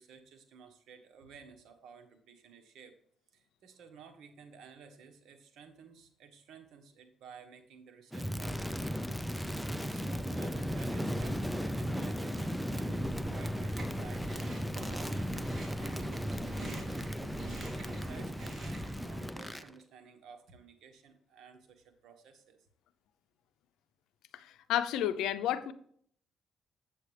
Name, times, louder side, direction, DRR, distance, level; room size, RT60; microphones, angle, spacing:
voice 1, 0.0-3.0 3.3-9.2 9.4-17.1 17.4-22.6, right 6 dB, 75° right, 6 dB, 1.3 m, -55 dB
Crackle, 8.1-19.7, equal, ahead, 0.6 m, -36 dB
Chewing mastication, 13.0-19.0, right 2 dB, 40° right, 2.9 m, -46 dB
voice 2, 24.3-25.7, left 11 dB, 90° left, 12 dB, 0.6 m, -31 dB
8.0 x 7.8 x 3.3 m, 0.62 s
cardioid pair, 90°, 0 cm